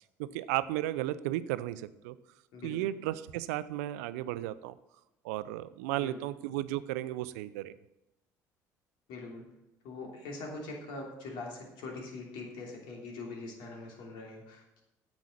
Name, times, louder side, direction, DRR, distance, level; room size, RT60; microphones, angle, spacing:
voice 1, 0.2-2.1 2.6-4.8 5.2-7.7, right 14 dB, 80° right, 15 dB, 0.5 m, -34 dB
voice 2, 2.5-2.9 5.9-6.2 9.1-9.5 9.8-14.8, left 3 dB, 70° left, 0 dB, 3.0 m, -43 dB
9.4 x 7.2 x 6.5 m, 0.91 s
hypercardioid pair, 65°, 8 cm